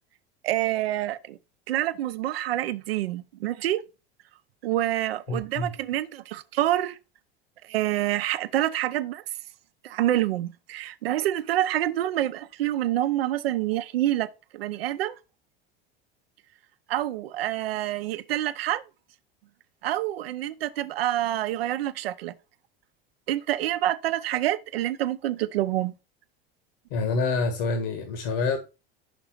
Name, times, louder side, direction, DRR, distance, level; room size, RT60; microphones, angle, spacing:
voice 1, 0.4-1.4 1.7-3.8 4.6-7.0 7.6-9.2 9.8-14.3 14.5-15.2 16.9-18.8 19.8-22.3 23.3-25.9, right 13 dB, 90° right, 0.6 m, -27 dB
voice 2, 5.3-5.7 26.9-28.6, left 3 dB, 70° left, 1.5 m, -27 dB
6.0 x 3.9 x 5.9 m
hypercardioid pair, 95°, 29 cm